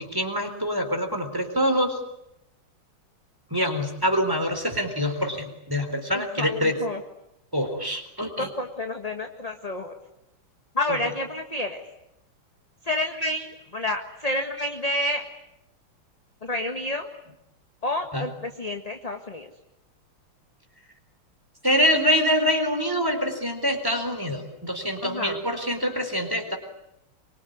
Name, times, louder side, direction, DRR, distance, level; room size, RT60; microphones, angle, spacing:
voice 1, 0.0-2.0 3.5-6.8 7.5-8.5 10.9-11.0 18.1-18.3 21.6-26.6, equal, 10° right, 6 dB, 4.2 m, -25 dB
voice 2, 6.1-7.0 8.4-9.9 10.7-11.8 12.8-15.3 16.4-17.1 17.8-19.5 25.0-25.4, left 1 dB, 20° left, 4 dB, 1.5 m, -29 dB
26.0 x 24.0 x 9.7 m, 0.85 s
omnidirectional pair, 2.3 m